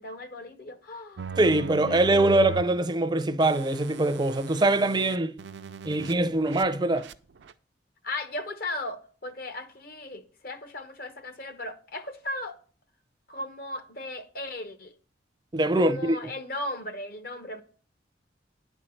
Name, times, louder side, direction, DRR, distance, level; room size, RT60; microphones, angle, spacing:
voice 1, 0.0-1.3 1.9-2.4 8.0-12.6 13.3-14.9 15.7-17.6, left 1 dB, 55° left, 0.9 m, -36 dB
sound 1, 1.2-2.6 3.1-6.1 6.4-6.6 6.9-7.1 7.4-7.5, right 6 dB, 75° right, 0.5 m, -38 dB
voice 2, 1.4-5.4 5.8-7.1 15.5-16.2, right 2 dB, 25° right, 0.5 m, -23 dB
10.5 x 4.4 x 6.3 m
head